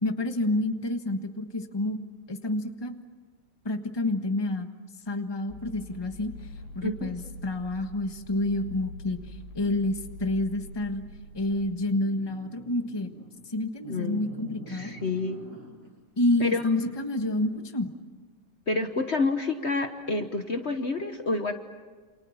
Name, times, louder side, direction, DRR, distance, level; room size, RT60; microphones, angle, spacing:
voice 1, 0.0-2.0 2.3-3.0 3.6-4.7 5.1-6.3 6.7-11.0 11.3-13.1 13.5-14.9 16.2-17.9, left 2 dB, 15° left, 6 dB, 1.4 m, -28 dB
sound 1, 5.5-11.4, left 2 dB, 70° left, 6.1 m, -44 dB
voice 2, 6.8-7.1 13.9-14.2 14.7-15.4 16.4-16.6 18.7-21.5, left 3 dB, 45° left, 6 dB, 1.4 m, -28 dB
sound 2, 11.8-13.3 13.8-15.9 16.3-17.7, equal, 80° right, 8.3 m, -46 dB
28.5 x 28.0 x 7.2 m, 1.4 s
omnidirectional pair, 1.8 m